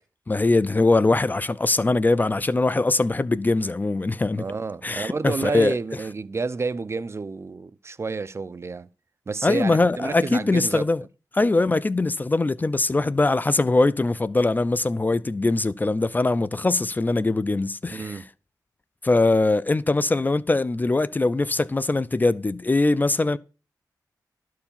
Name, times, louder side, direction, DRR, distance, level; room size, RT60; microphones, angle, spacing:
voice 1, 0.3-4.4 4.8-5.8 9.4-11.0 11.3-18.2 19.0-23.4, left 2 dB, 25° left, 0.4 m, -22 dB
voice 2, 4.4-8.9 9.3-10.9 17.9-18.3, right 4 dB, 40° right, 0.5 m, -30 dB
12.5 x 4.7 x 7.0 m
wide cardioid pair, 85°, 7 cm